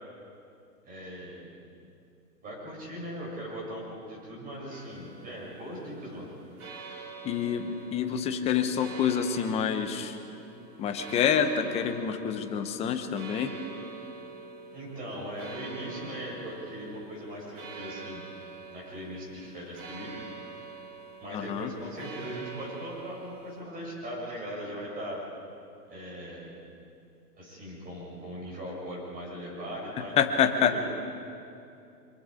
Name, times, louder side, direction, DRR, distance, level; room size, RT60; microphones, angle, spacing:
voice 1, 0.9-1.5 2.4-6.3 14.7-18.2 18.7-20.1 21.2-25.2 25.9-26.5 27.4-30.1 30.7-30.9, equal, 15° right, -3 dB, 6.9 m, -39 dB
sound 1, 4.7-23.6, right 4 dB, 60° right, 4.8 m, -46 dB
voice 2, 7.2-10.2 10.8-13.5 21.3-21.7 30.2-30.7, left 8 dB, 15° left, 8 dB, 0.9 m, -27 dB
25.5 x 22.5 x 5.0 m, 2.6 s
figure-of-eight pair, 125°, 49 cm